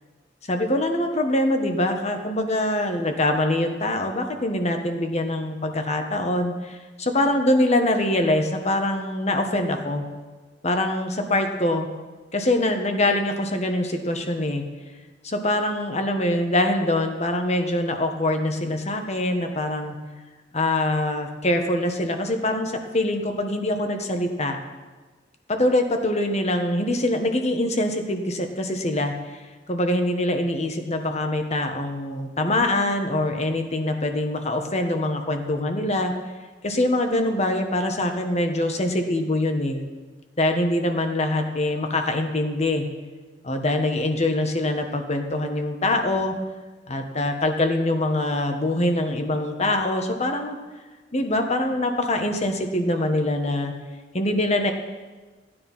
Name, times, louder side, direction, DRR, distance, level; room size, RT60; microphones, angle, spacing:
voice 1, 0.5-10.0 10.6-11.9 12.3-14.6 15.2-19.9 20.5-24.6 25.5-29.1 29.7-36.1 36.6-39.8 40.4-42.8 43.4-46.3 46.9-50.6 51.1-53.7 54.1-54.7, left 1 dB, 40° left, 5 dB, 1.4 m, -24 dB
15.0 x 10.0 x 5.6 m, 1.3 s
head